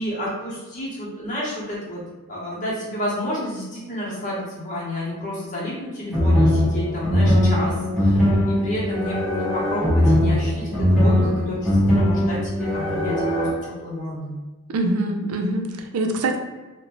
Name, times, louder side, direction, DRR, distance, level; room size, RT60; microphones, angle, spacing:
voice 1, 0.0-2.0 2.3-14.3, equal, 35° left, -6 dB, 0.8 m, -30 dB
sound 1, 6.1-13.5, left 1 dB, ahead, 0.7 m, -20 dB
voice 2, 14.7-16.4, right 2 dB, 80° right, 4 dB, 0.4 m, -24 dB
2.6 x 2.1 x 2.9 m, 1.2 s
head